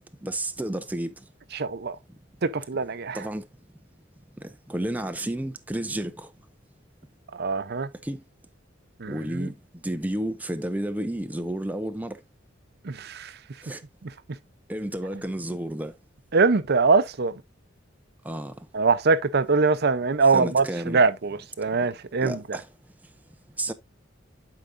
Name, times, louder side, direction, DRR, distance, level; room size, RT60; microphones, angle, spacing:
voice 1, 0.0-1.3 3.1-3.5 4.4-6.3 8.0-8.2 9.1-12.2 13.6-13.8 14.7-16.0 18.2-18.7 20.3-21.0 22.2-22.7 23.0-23.1 23.6-23.7, right 1 dB, 10° right, 0.6 m, -31 dB
voice 2, 1.5-2.0 2.4-3.2 7.3-7.9 9.0-9.5 12.8-13.3 16.3-17.3 18.7-22.4, right 4 dB, 55° right, 0.7 m, -23 dB
11.5 x 4.9 x 2.5 m
head